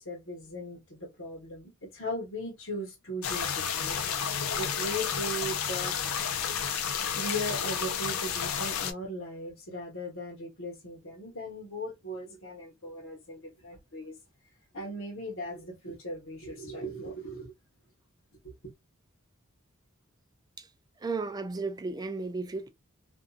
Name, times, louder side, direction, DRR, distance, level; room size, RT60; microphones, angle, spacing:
voice 1, 0.0-6.0 7.2-14.2 14.7-17.5 18.4-18.5, equal, 65° left, 1.1 m, -38 dB
sound 1, 3.2-8.9, left 7 dB, 85° left, 0.5 m, -31 dB
voice 2, 21.0-22.7, right 3 dB, 20° right, 0.4 m, -34 dB
2.6 x 2.5 x 2.3 m
head